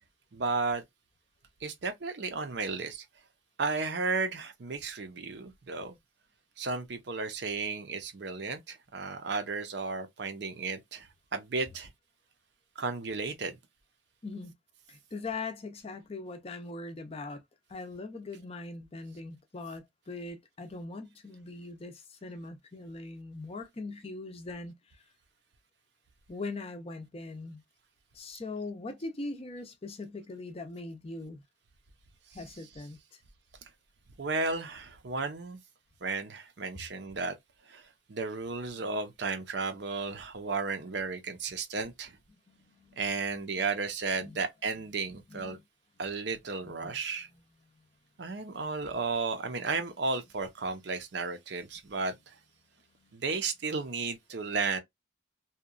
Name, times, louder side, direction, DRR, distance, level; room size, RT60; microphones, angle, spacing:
voice 1, 0.3-0.8 1.6-3.1 3.6-6.0 6.6-11.9 12.8-13.6 32.3-32.9 34.2-35.6 36.0-37.4 37.7-42.2 43.0-45.6 46.0-47.3 48.2-52.4 53.1-54.8, right 4 dB, 60° right, 0.6 m, -34 dB
voice 2, 14.2-14.5 14.9-17.4 17.7-24.7 26.3-27.6 28.1-31.4 32.3-33.0 42.5-43.7 44.2-44.4 45.3-45.6 46.6-46.9 52.9-53.2, left 3 dB, 30° left, 0.5 m, -41 dB
2.8 x 2.2 x 2.4 m
head